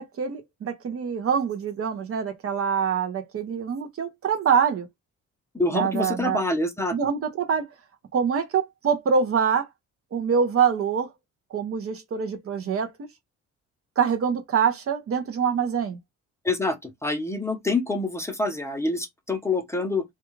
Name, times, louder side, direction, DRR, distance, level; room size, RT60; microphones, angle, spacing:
voice 1, 0.0-4.9 5.7-6.4 6.9-7.7 8.1-9.7 10.1-11.1 11.5-12.9 14.0-16.0, right 7 dB, 50° right, 0.6 m, -25 dB
voice 2, 5.5-6.9 16.4-20.0, left 2 dB, 10° left, 0.6 m, -26 dB
2.3 x 2.3 x 3.0 m
cardioid pair, 90°, 30 cm